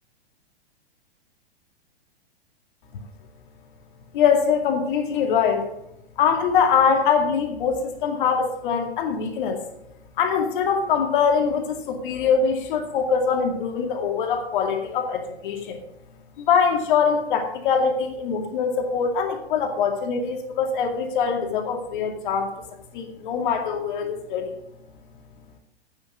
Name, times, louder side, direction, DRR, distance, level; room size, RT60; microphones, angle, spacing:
voice 1, 4.1-5.7 6.2-9.6 10.2-15.8 16.5-22.5 22.9-24.5, left 6 dB, 50° left, 4 dB, 2.3 m, -23 dB
9.1 x 8.4 x 6.1 m, 0.80 s
figure-of-eight pair, 110°, 32 cm